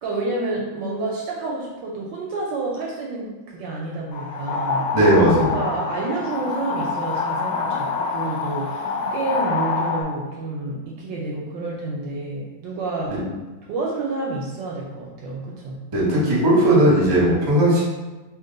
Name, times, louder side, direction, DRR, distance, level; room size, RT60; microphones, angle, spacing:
voice 1, 0.0-4.9 5.5-13.2 13.7-15.8, right 2 dB, 75° right, -3 dB, 1.1 m, -29 dB
sound 1, 4.1-10.0, left 4 dB, 75° left, 1.1 m, -26 dB
voice 2, 4.9-5.5 13.1-13.2 15.9-17.8, right 1 dB, 30° right, -6 dB, 0.8 m, -17 dB
2.9 x 2.8 x 3.8 m, 1.2 s
omnidirectional pair, 2.3 m